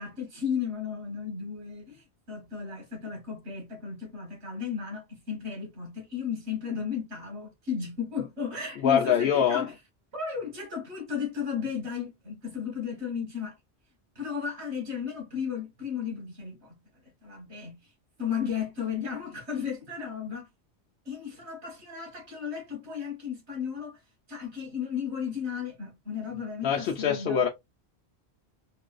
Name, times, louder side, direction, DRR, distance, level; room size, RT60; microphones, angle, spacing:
voice 1, 0.0-9.7 10.1-13.6 14.2-16.8 17.2-17.8 18.2-20.5 21.1-24.0 24.3-27.4, left 7 dB, 80° right, 1.8 m, -34 dB
voice 2, 8.8-9.6 26.6-27.5, left 8 dB, 65° left, 0.8 m, -24 dB
3.8 x 2.2 x 2.5 m
omnidirectional pair, 1.1 m